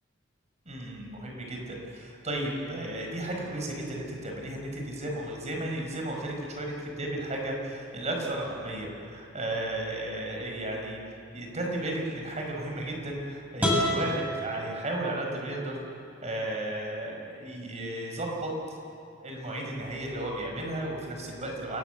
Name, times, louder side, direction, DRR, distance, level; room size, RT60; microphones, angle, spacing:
voice 1, 0.7-11.0 11.3-18.5 19.2-21.8, right 1 dB, 35° right, 1 dB, 5.3 m, -34 dB
sound 1, 13.6-15.5, equal, 10° right, 6.8 m, -29 dB
28.5 x 18.0 x 8.2 m, 2.8 s
head